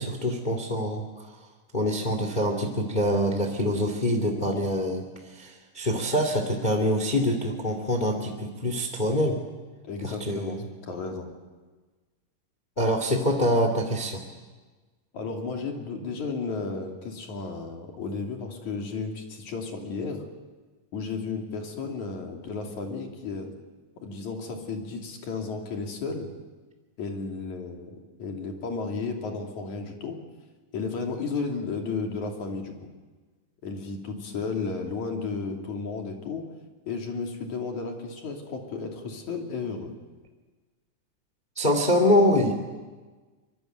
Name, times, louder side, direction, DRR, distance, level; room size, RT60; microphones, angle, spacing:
voice 1, 0.0-1.4 1.7-9.4 10.0-10.6 12.8-14.2 41.6-42.5, equal, 15° left, 5 dB, 2.1 m, -25 dB
voice 2, 9.8-11.3 15.1-20.2 20.9-23.5 24.0-26.3 27.0-30.2 30.7-32.9 33.6-36.5 36.9-39.9, left 4 dB, 70° left, 2 dB, 4.3 m, -33 dB
24.5 x 23.5 x 9.2 m, 1.3 s
omnidirectional pair, 3.5 m